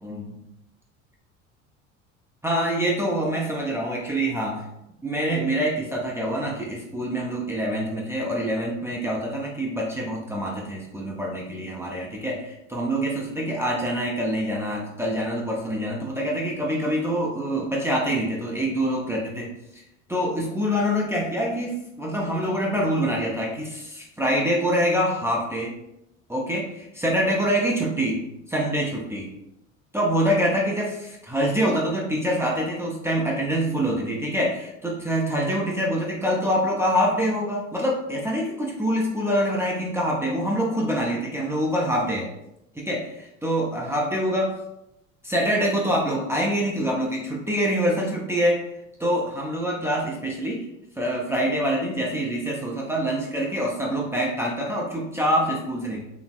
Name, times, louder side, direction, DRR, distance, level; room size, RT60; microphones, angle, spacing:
voice 1, 0.0-0.4 2.4-4.7 5.0-19.8 20.1-25.7 26.3-29.3 29.9-42.3 42.8-44.5 45.2-48.6 49.0-50.7 51.0-56.0, equal, 5° right, -3 dB, 0.5 m, -25 dB
4.0 x 3.3 x 2.4 m, 0.84 s
figure-of-eight pair, 65°, 40 cm